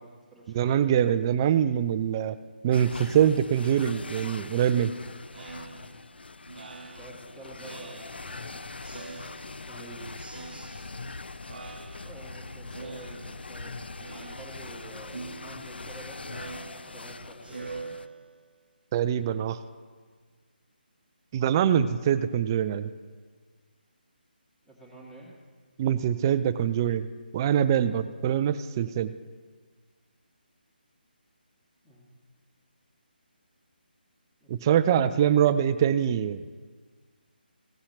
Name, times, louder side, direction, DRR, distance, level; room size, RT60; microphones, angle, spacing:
voice 1, 0.0-0.9 7.0-8.7 9.5-10.2 12.0-17.9 24.6-25.3 31.8-32.1 34.4-34.8 35.1-35.2, right 2 dB, ahead, -7 dB, 2.3 m, -48 dB
voice 2, 0.5-2.4 2.6-4.9 18.9-19.6 21.3-22.9 25.8-27.1 27.3-29.1 34.5-36.4, right 9 dB, 20° right, 13 dB, 0.4 m, -24 dB
sound 1, 2.7-18.1, left 3 dB, 80° left, 0.5 m, -42 dB
Speech synthesizer, 5.3-8.5 8.8-9.8 10.2-11.2 11.5-12.4 12.7-13.6 14.0-14.8 15.1-18.6, right 4 dB, 65° right, 0.8 m, -45 dB
16.5 x 5.7 x 5.8 m, 1.5 s
figure-of-eight pair, 155°, 5 cm